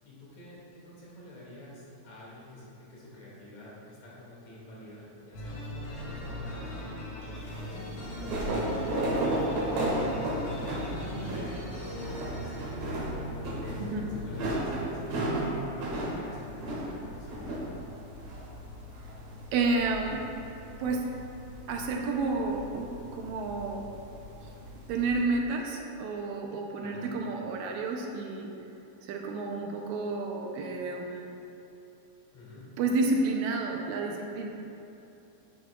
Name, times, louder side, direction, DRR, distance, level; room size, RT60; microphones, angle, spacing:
voice 1, 0.0-17.5 26.8-27.1 32.3-32.6, left 1 dB, 60° left, -7 dB, 3.3 m, -48 dB
sound 1, 5.3-15.2, left 1 dB, 80° left, 3.5 m, -39 dB
sound 2, 7.4-25.2, right 1 dB, 60° right, 2.9 m, -35 dB
voice 2, 19.5-20.2 20.8-21.0 21.7-23.9 24.9-28.5 29.0-31.3 32.8-34.5, right 3 dB, 80° right, 1 dB, 1.9 m, -30 dB
11.0 x 8.9 x 2.3 m, 2.8 s
omnidirectional pair, 3.5 m